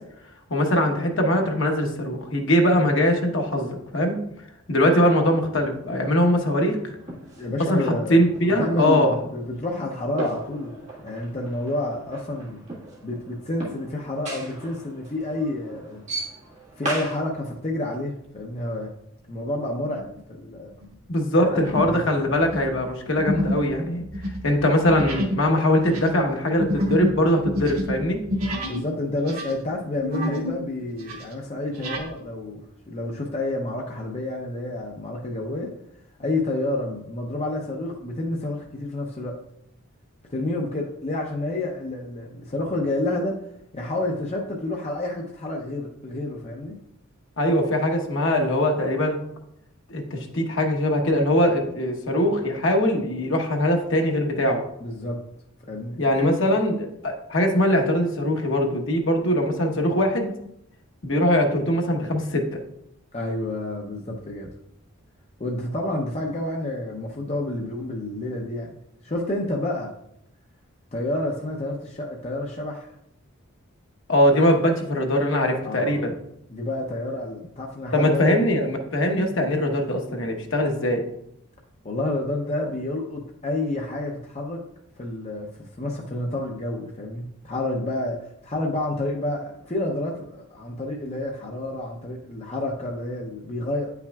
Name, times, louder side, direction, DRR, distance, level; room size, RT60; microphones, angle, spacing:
voice 1, 0.5-4.2 4.7-6.8 7.7-9.1 21.1-24.0 24.4-28.2 47.4-49.2 49.9-54.6 56.0-60.3 61.0-62.6 74.1-76.2 77.9-81.0, equal, 60° left, 2 dB, 1.1 m, -21 dB
sound 1, 6.1-17.2, right 2 dB, 30° right, 1.7 m, -38 dB
voice 2, 7.4-8.2 8.6-10.8 11.0-12.6 13.0-16.1 16.8-18.9 19.3-20.7 21.4-22.0 28.7-32.6 32.9-35.7 36.2-39.4 40.3-43.4 43.7-46.7 54.8-55.2 55.7-56.4 63.1-64.5 65.4-68.8 69.0-69.9 70.9-72.9 75.6-76.1 76.5-78.4 81.8-84.6 85.0-93.9, left 1 dB, 30° left, -1 dB, 0.6 m, -29 dB
sound 2, 19.9-20.2 20.7-20.9 21.5-22.0 22.3-28.9 29.2-30.6 30.9-32.1, equal, 85° right, 1.5 m, -29 dB
9.2 x 5.7 x 2.3 m, 0.76 s
head